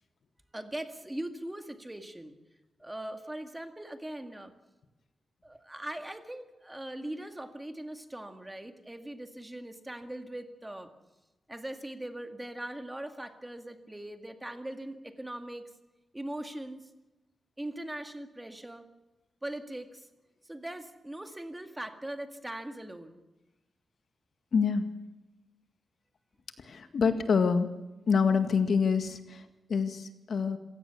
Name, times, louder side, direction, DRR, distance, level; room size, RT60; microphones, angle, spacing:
voice 1, 0.5-2.4 2.8-4.5 5.4-10.9 11.5-15.7 16.1-16.8 17.6-18.9 19.4-20.1 20.4-23.2, right 1 dB, 10° right, 6 dB, 2.0 m, -40 dB
voice 2, 24.5-24.9 26.6-27.7 28.1-30.6, left 5 dB, 60° left, 8 dB, 1.9 m, -26 dB
26.5 x 16.5 x 7.1 m, 1.1 s
wide cardioid pair, 125°, 0 cm